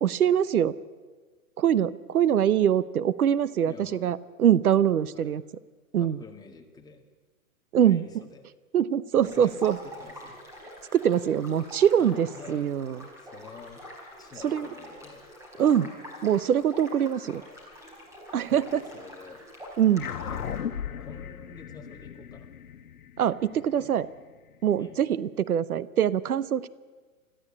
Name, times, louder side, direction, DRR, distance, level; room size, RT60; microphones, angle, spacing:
voice 1, 0.0-0.8 1.6-5.4 5.9-6.2 7.7-8.0 8.7-9.8 10.9-13.0 14.4-14.7 15.6-15.9 16.2-17.4 18.3-18.8 19.8-20.1 23.2-24.1 24.6-26.7, right 9 dB, 90° right, 18 dB, 0.9 m, -23 dB
voice 2, 3.7-4.2 5.1-5.3 6.0-7.0 7.8-8.5 9.2-9.5 9.8-10.4 12.0-12.6 13.2-13.9 14.2-15.2 15.5-15.8 18.5-19.4 20.2-20.4 21.0-22.5 23.5-24.1 24.8-25.0, left 5 dB, 10° left, 2 dB, 1.9 m, -48 dB
sound 1, 9.2-20.6, equal, 5° right, 4.6 m, -45 dB
sound 2, 20.0-24.7, left 8 dB, 80° left, 1.3 m, -37 dB
21.5 x 14.5 x 8.5 m, 1.4 s
hypercardioid pair, 140°, 43 cm